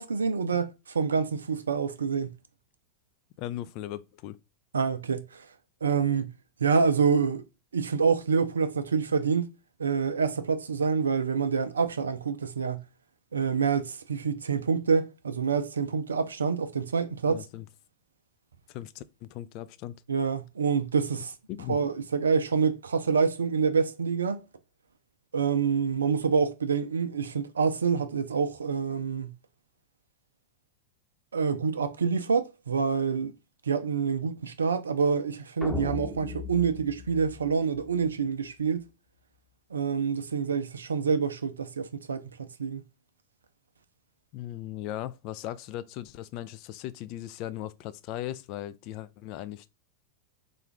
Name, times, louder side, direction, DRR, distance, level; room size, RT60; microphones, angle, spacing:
voice 1, 0.0-2.3 4.7-5.5 5.8-6.3 6.6-7.4 7.7-9.5 9.8-12.9 13.3-17.4 20.1-21.3 21.7-24.4 25.3-29.4 31.3-33.3 33.7-38.8 39.7-42.8, right 5 dB, 70° right, 0.4 m, -27 dB
voice 2, 3.4-4.4 17.3-17.6 18.7-20.0 21.5-21.8 44.3-49.7, left 13 dB, 45° left, 0.3 m, -38 dB
sound 1, 35.6-38.1, left 4 dB, 5° left, 0.9 m, -37 dB
3.7 x 2.3 x 3.3 m
figure-of-eight pair, 90°, 0 cm